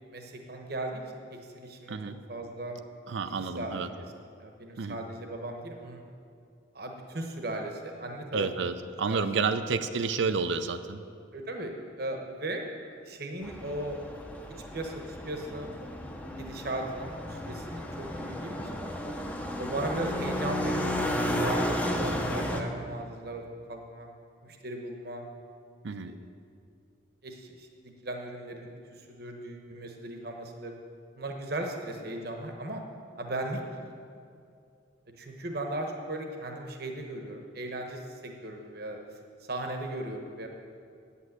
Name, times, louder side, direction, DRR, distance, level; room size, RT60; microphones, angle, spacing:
voice 1, 0.1-1.0 1.3-2.0 2.3-2.8 3.2-4.0 4.4-6.0 6.7-8.7 9.1-9.2 11.3-12.6 12.9-14.0 14.7-15.7 16.4-19.1 19.6-23.4 23.7-24.1 24.4-25.2 26.0-26.2 27.2-27.7 28.0-30.7 31.2-32.8 33.2-33.9 35.2-39.0 39.4-40.5, right 1 dB, 50° right, 3 dB, 1.1 m, -37 dB
voice 2, 3.1-3.9 4.8-5.0 8.3-11.0 25.8-26.1, right 4 dB, 70° right, 10 dB, 0.5 m, -30 dB
sound 1, 13.4-22.6, left 1 dB, 5° left, 0.7 m, -33 dB
9.3 x 8.5 x 7.9 m, 2.4 s
head